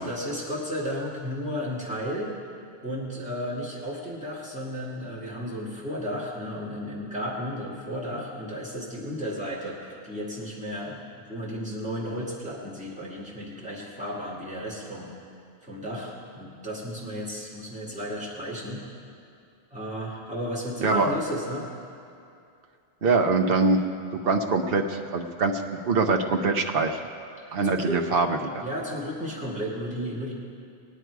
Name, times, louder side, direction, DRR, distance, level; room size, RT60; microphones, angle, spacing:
voice 1, 0.0-2.3 2.8-15.1 15.6-18.9 19.7-21.7 27.5-28.0 28.6-30.3, equal, 5° right, -6 dB, 2.3 m, -33 dB
voice 2, 23.0-23.8 24.1-27.0 27.5-28.3 28.5-28.6, right 3 dB, 65° right, 4 dB, 1.1 m, -23 dB
20.5 x 9.2 x 4.7 m, 2.5 s
omnidirectional pair, 1.1 m